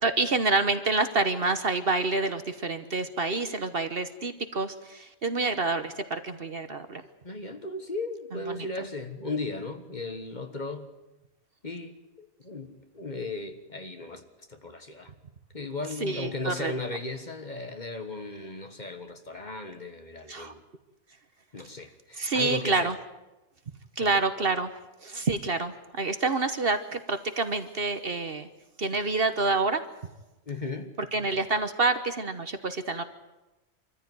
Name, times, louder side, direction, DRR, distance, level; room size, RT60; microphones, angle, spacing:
voice 1, 0.0-7.0 8.5-8.7 16.0-16.7 20.3-20.5 22.2-22.9 24.0-24.7 25.0-28.5 28.8-29.8 31.1-33.0, right 3 dB, 45° right, 10 dB, 1.3 m, -27 dB
voice 2, 7.2-10.9 11.6-14.2 14.5-15.1 15.5-20.6 21.5-22.9 24.0-24.2 30.5-30.9, left 3 dB, 35° left, 7 dB, 1.5 m, -36 dB
24.5 x 14.5 x 9.4 m, 1.0 s
omnidirectional pair, 1.4 m